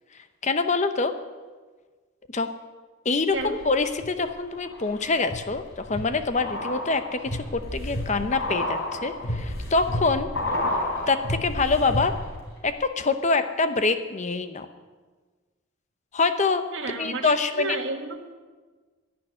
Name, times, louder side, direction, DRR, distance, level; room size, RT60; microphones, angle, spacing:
voice 1, 0.4-1.1 2.3-2.5 3.0-10.3 11.1-12.1 12.6-14.7 16.1-16.6 17.0-17.8, left 3 dB, 35° left, 9 dB, 0.8 m, -25 dB
sound 1, 3.3-4.1 4.5-12.4 12.7-12.8, left 1 dB, 60° left, 4.1 m, -31 dB
voice 2, 16.7-18.3, right 3 dB, 60° right, 5 dB, 1.6 m, -32 dB
11.5 x 11.0 x 9.8 m, 1.4 s
head